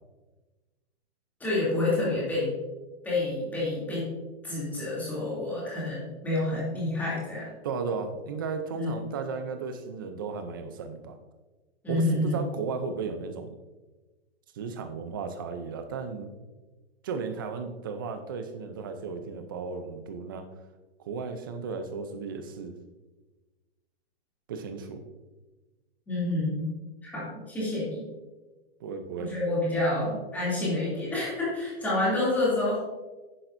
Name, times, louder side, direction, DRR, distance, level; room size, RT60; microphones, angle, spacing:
voice 1, 1.4-2.5 3.0-4.1 4.4-7.5 8.7-8.9 11.8-12.4 26.1-26.7 27.0-28.1 29.2-32.8, left 2 dB, 5° left, -8 dB, 2.7 m, -28 dB
voice 2, 7.6-11.2 11.9-13.5 14.5-16.3 17.0-20.5 21.0-22.8 24.5-25.0 28.8-29.3, right 5 dB, 20° right, 8 dB, 0.5 m, -35 dB
10.5 x 9.9 x 2.6 m, 1.2 s
hypercardioid pair, 175°, 31 cm